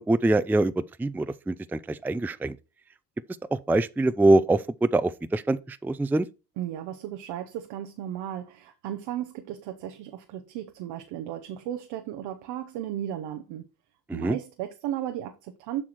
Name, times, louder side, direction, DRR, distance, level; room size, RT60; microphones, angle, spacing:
voice 1, 0.0-2.6 3.5-6.3 14.1-14.4, right 2 dB, 5° right, 0.4 m, -24 dB
voice 2, 6.6-13.6 14.1-15.8, right 11 dB, 85° right, 0.9 m, -35 dB
7.4 x 4.8 x 4.4 m
supercardioid pair, 55°, 42 cm